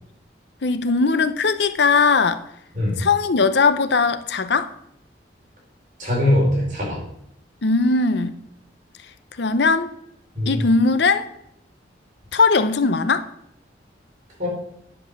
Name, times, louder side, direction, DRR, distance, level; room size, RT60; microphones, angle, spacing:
voice 1, 0.6-2.4 3.0-4.7 7.6-8.4 9.4-9.9 10.5-11.3 12.3-13.3, left 4 dB, 70° left, 0.6 m, -19 dB
voice 2, 6.0-7.0 10.3-10.6 14.4-14.5, left 1 dB, 45° right, 4.6 m, -21 dB
10.0 x 5.4 x 6.6 m
head